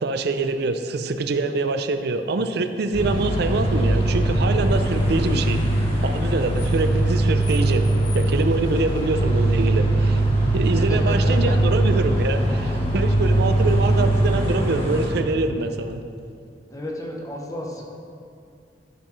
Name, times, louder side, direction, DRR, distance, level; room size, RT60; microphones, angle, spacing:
voice 1, 0.0-7.9 8.1-10.2 10.5-16.0, right 3 dB, 65° right, 8 dB, 0.5 m, -25 dB
sound 1, 2.9-15.1, right 1 dB, 35° left, 1.8 m, -21 dB
voice 2, 10.7-11.5 16.7-17.8, equal, 20° left, -1 dB, 0.9 m, -31 dB
12.0 x 6.5 x 3.2 m, 2.4 s
head